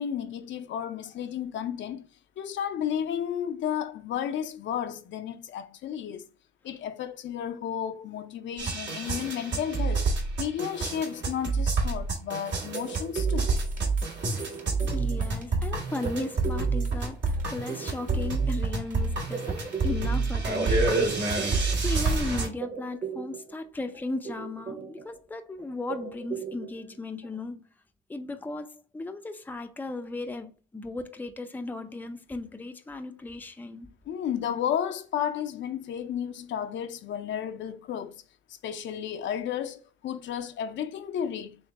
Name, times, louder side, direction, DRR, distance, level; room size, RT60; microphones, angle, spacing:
voice 1, 0.0-2.1 2.4-6.3 6.6-10.1 10.4-13.5 34.1-38.2 38.6-41.6, left 9 dB, 70° left, 0.5 m, -32 dB
sound 1, 8.6-22.5, right 3 dB, 65° right, 1.6 m, -28 dB
sound 2, 12.5-22.0 22.3-23.7 23.9-25.3 25.6-27.0 27.2-27.4, right 6 dB, 40° right, 1.3 m, -39 dB
voice 2, 14.9-27.7 28.1-33.9, left 2 dB, 10° left, 0.5 m, -36 dB
3.5 x 3.1 x 4.0 m
cardioid pair, 90°, 20 cm